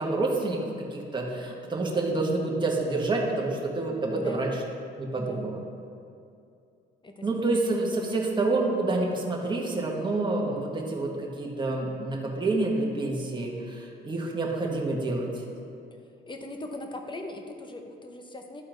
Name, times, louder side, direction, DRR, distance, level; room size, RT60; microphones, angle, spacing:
voice 1, 0.0-4.6 5.0-5.6 7.2-15.3, right 2 dB, 25° right, -2 dB, 1.4 m, -28 dB
voice 2, 4.1-4.5 5.2-5.5 7.0-7.6 16.3-18.6, left 2 dB, 25° left, 4 dB, 1.0 m, -40 dB
12.0 x 4.3 x 3.9 m, 2.5 s
cardioid pair, 90°, 20 cm